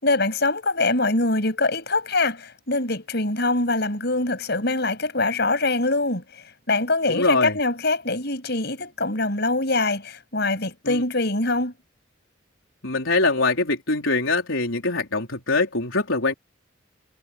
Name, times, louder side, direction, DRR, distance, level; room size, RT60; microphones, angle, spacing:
voice 1, 0.0-11.7, left 2 dB, 55° left, 7.5 m, -23 dB
voice 2, 7.1-7.6 10.8-11.0 12.8-16.3, left 3 dB, 90° left, 4.3 m, -23 dB
head